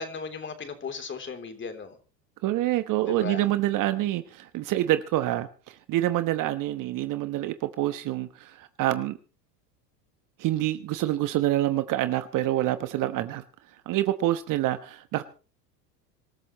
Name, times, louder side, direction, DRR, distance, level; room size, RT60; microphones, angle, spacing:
voice 1, 0.0-2.0 3.1-3.4, left 5 dB, 25° left, 7 dB, 3.5 m, -36 dB
voice 2, 2.4-9.2 10.4-13.4 13.9-15.2, right 14 dB, 40° right, 11 dB, 1.2 m, -27 dB
26.0 x 13.5 x 3.1 m, 0.36 s
hypercardioid pair, 90°, 48 cm